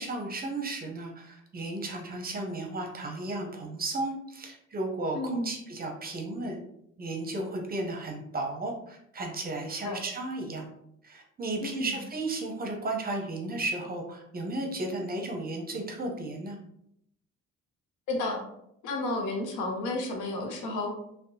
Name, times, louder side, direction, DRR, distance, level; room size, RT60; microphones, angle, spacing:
voice 1, 0.0-6.6 7.0-10.7 11.0-16.6, right 2 dB, 30° right, 2 dB, 0.6 m, -34 dB
voice 2, 5.1-5.5 9.8-10.0 11.6-12.0 18.1-18.4 18.8-20.9, left 2 dB, 85° left, 1 dB, 0.7 m, -31 dB
2.7 x 2.1 x 2.6 m, 0.74 s
cardioid pair, 90°, 30 cm